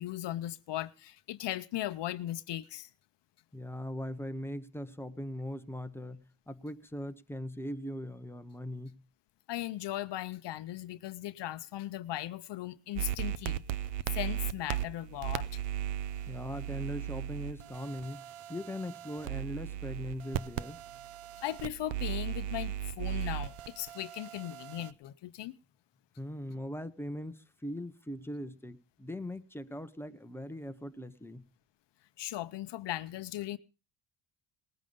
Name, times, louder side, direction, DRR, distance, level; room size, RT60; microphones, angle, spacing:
voice 1, 0.0-2.9 9.5-13.6 14.1-15.6 21.4-25.6 32.2-33.6, left 14 dB, 55° left, 0.7 m, -38 dB
voice 2, 3.5-9.0 16.3-18.2 18.5-20.8 26.2-31.5, equal, 5° left, 0.8 m, -40 dB
sound 1, 13.0-24.9, right 11 dB, 85° right, 0.8 m, -37 dB
19.5 x 9.0 x 5.3 m
cardioid pair, 125°, 50 cm